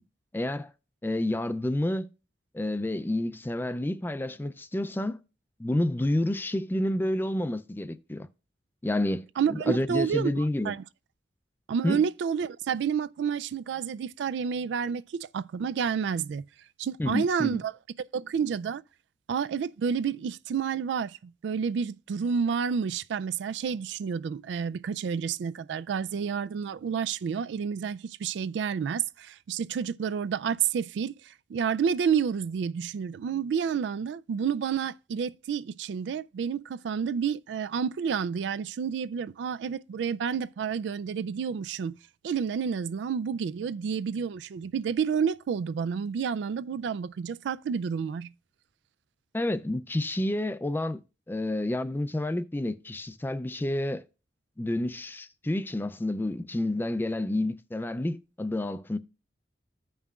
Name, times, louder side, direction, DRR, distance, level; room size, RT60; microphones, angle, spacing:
voice 1, 0.3-0.7 1.0-2.1 2.5-5.2 5.6-8.3 8.8-9.3 9.5-10.7 11.8-12.0 17.0-17.6 49.3-51.0 51.3-54.0 54.6-59.0, left 1 dB, 10° left, 0.4 m, -29 dB
voice 2, 9.4-10.8 11.7-16.4 16.8-17.7 18.1-18.8 19.3-42.0 42.2-48.3, right 7 dB, 80° right, 0.3 m, -30 dB
14.5 x 5.5 x 2.3 m
head